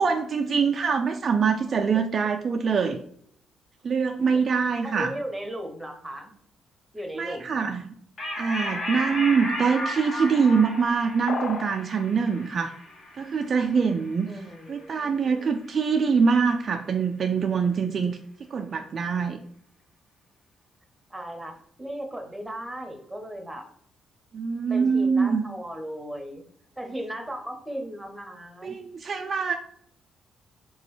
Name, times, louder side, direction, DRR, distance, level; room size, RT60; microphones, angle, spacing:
voice 1, 0.0-3.0 3.8-5.1 7.1-7.9 8.4-12.7 13.2-14.4 14.7-18.2 18.5-19.4 24.3-25.4 28.6-29.6, right 5 dB, 45° right, 4 dB, 0.3 m, -24 dB
voice 2, 4.8-6.3 6.9-7.8 14.3-15.5 21.1-23.6 24.7-26.4 26.8-28.8, right 1 dB, 5° right, 3 dB, 0.8 m, -37 dB
sound 1, 8.2-15.1, left 1 dB, 50° left, 1.2 m, -35 dB
sound 2, 11.3-11.8, left 5 dB, 75° left, 0.4 m, -31 dB
3.9 x 2.9 x 3.1 m, 0.64 s
cardioid pair, 90°, 0 cm